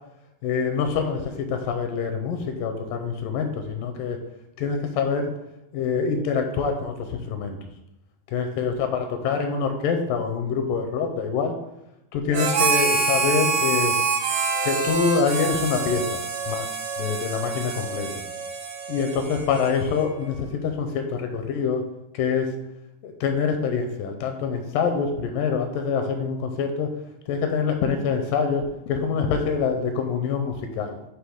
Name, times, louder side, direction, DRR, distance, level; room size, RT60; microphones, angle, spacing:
voice 1, 0.4-4.2 4.6-5.3 5.7-7.6 8.3-11.5 12.1-14.0 14.6-16.2 16.5-16.7 17.0-18.1 18.9-21.8 22.1-22.5 23.0-26.9 27.3-31.0, left 5 dB, 85° left, 6 dB, 2.1 m, -25 dB
Harmonica, 12.3-20.1, right 4 dB, 65° right, 1.5 m, -26 dB
7.6 x 2.8 x 4.9 m, 0.89 s
omnidirectional pair, 4.0 m